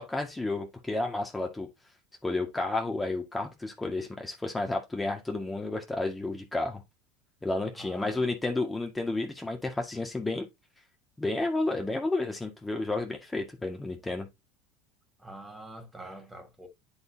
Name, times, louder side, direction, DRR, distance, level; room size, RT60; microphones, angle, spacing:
voice 1, 0.0-1.7 2.2-6.8 7.4-10.5 11.2-14.3, left 2 dB, 10° left, 1.8 m, -31 dB
voice 2, 7.7-8.3 15.2-16.7, right 1 dB, 10° right, 2.9 m, -45 dB
10.5 x 4.1 x 2.7 m
hypercardioid pair, 80°, 0 cm